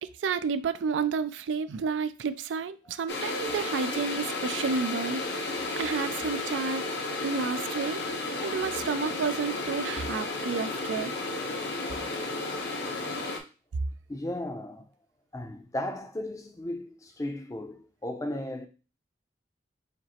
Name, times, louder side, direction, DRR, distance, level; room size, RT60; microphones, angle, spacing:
voice 1, 0.0-5.2 5.8-6.8 7.2-8.0 8.4-11.1, right 5 dB, 85° right, 0.4 m, -30 dB
sound 1, 3.1-13.4, left 2 dB, 65° left, 0.8 m, -33 dB
voice 2, 14.1-14.8 15.3-18.7, left 1 dB, 20° left, 0.5 m, -35 dB
5.0 x 2.0 x 4.2 m
head